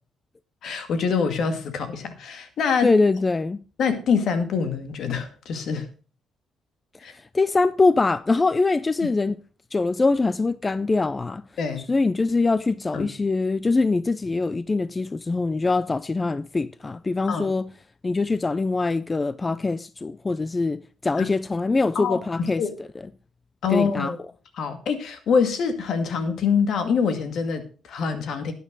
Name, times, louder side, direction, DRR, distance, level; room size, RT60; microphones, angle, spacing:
voice 1, 0.6-2.9 3.8-5.9 7.0-7.1 11.6-11.9 12.9-13.1 17.3-17.5 21.2-21.3 22.0-22.7 23.6-24.2 24.6-28.5, left 6 dB, 65° left, 2.1 m, -25 dB
voice 2, 2.8-3.6 7.3-9.4 9.7-11.4 11.9-17.7 18.0-22.6 23.7-24.1, left 3 dB, 25° left, 0.4 m, -23 dB
12.5 x 9.3 x 3.9 m
cardioid pair, 90°, 0 cm